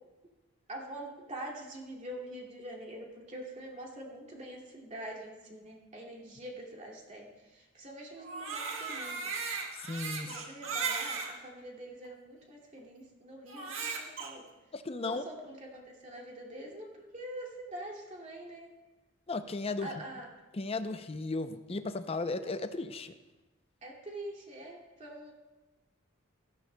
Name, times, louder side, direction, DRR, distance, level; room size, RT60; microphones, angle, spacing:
voice 1, 0.7-9.3 10.2-14.5 15.0-18.7 19.8-20.3 23.8-25.3, right 1 dB, 35° right, -2 dB, 2.4 m, -45 dB
Crying sobbing, 8.2-11.3 12.0-12.1 13.5-14.3, right 5 dB, 70° right, 1.6 m, -36 dB
voice 2, 9.7-10.3 14.7-15.2 19.3-19.9 20.5-23.1, left 3 dB, 30° left, 10 dB, 0.5 m, -35 dB
16.0 x 14.0 x 2.2 m, 1.1 s
head